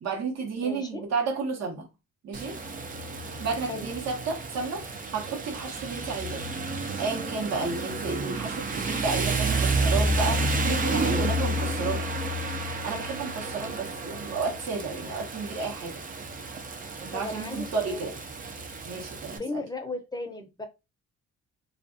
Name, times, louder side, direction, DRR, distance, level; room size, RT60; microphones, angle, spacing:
voice 1, 0.0-1.9 2.2-2.6 3.4-6.4 7.0-12.1 12.8-16.0 17.0-18.1 18.8-19.6, right 4 dB, 60° right, 1.0 m, -32 dB
voice 2, 0.6-1.0 3.6-3.9 17.1-18.1 19.3-20.7, left 2 dB, 15° left, 0.7 m, -36 dB
Rain, 2.3-19.4, right 2 dB, 30° right, 0.5 m, -30 dB
2.4 x 2.3 x 2.5 m
cardioid pair, 90°, 30 cm